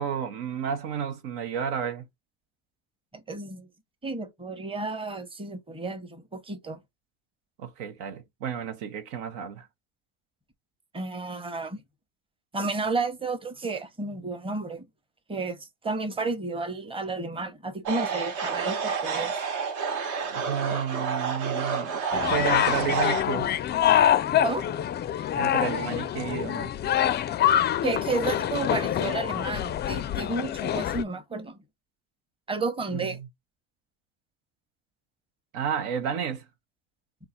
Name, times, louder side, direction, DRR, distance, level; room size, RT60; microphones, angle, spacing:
voice 1, 0.0-2.0 7.6-9.7 20.2-23.5 25.4-26.7 35.5-36.5, right 8 dB, 80° right, 1.0 m, -31 dB
voice 2, 3.1-3.7 4.0-6.8 10.9-11.8 12.5-14.9 15.3-19.3 24.4-24.7 27.8-31.6 32.5-33.2, right 3 dB, 15° right, 1.0 m, -32 dB
sound 1, 17.9-23.2, right 5 dB, 60° right, 1.2 m, -30 dB
sound 2, 22.1-31.0, left 10 dB, 30° left, 0.4 m, -25 dB
3.8 x 2.5 x 4.1 m
supercardioid pair, 100°, 34 cm